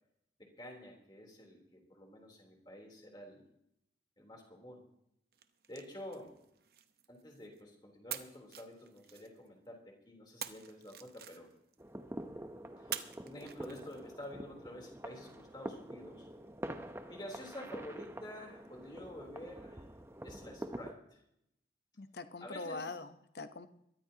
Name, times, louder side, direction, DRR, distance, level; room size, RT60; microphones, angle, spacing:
voice 1, 0.4-3.4 4.2-4.8 5.7-6.3 7.1-11.5 12.8-16.3 17.1-19.9 20.2-21.2 22.4-23.0, left 1 dB, 25° left, 1 dB, 3.4 m, -49 dB
sound 1, 5.3-7.6 8.1-9.7 10.4-11.8 12.9-14.3, right 10 dB, 55° right, 0.8 m, -47 dB
sound 2, 11.8-20.9, right 1 dB, 15° right, 0.7 m, -46 dB
voice 2, 22.0-23.7, left 3 dB, 65° left, 10 dB, 0.9 m, -43 dB
22.0 x 14.0 x 2.9 m, 0.77 s
head